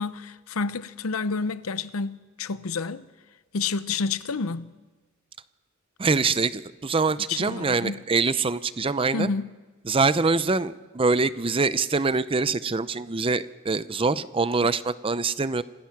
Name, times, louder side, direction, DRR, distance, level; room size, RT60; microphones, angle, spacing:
voice 1, 0.0-3.1 3.5-4.7 7.3-7.9 9.1-9.5, left 4 dB, 85° left, 0.7 m, -29 dB
voice 2, 6.0-9.3 9.8-15.6, right 4 dB, 25° right, 0.6 m, -24 dB
26.5 x 17.5 x 5.9 m
head